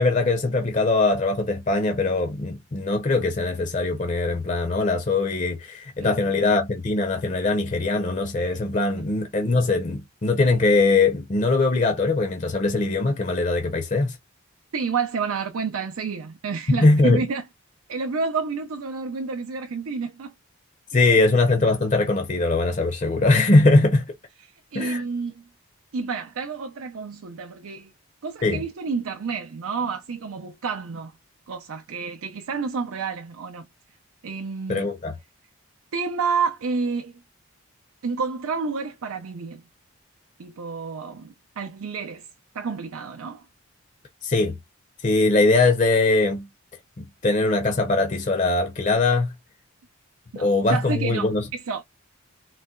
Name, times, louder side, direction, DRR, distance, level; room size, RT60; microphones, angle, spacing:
voice 1, 0.0-14.2 16.8-17.2 20.9-24.1 24.7-25.0 28.4-28.6 34.7-35.1 44.2-44.6 45.0-46.5 47.0-49.3 50.4-51.5, left 3 dB, 35° left, 0.5 m, -21 dB
voice 2, 6.0-6.4 14.7-17.4 17.9-20.3 20.9-21.0 24.4-25.4 25.9-27.9 28.2-31.1 31.5-33.7 34.2-34.9 35.9-37.1 38.0-39.6 40.4-42.3 42.5-43.5 50.3-51.8, right 5 dB, 75° right, 0.5 m, -29 dB
3.9 x 2.1 x 2.3 m
head